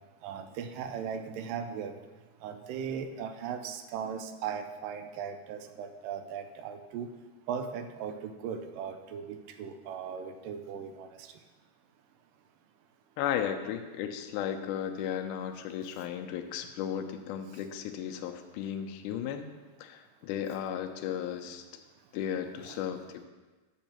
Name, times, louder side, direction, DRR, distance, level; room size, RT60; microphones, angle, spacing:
voice 1, 0.2-1.9 2.4-7.1 7.5-11.3 22.6-22.8, right 7 dB, 90° right, 7 dB, 2.3 m, -38 dB
voice 2, 13.2-19.5 19.8-21.6 22.1-23.3, left 9 dB, 80° left, 6 dB, 2.1 m, -35 dB
11.0 x 7.2 x 2.9 m, 1.2 s
omnidirectional pair, 3.8 m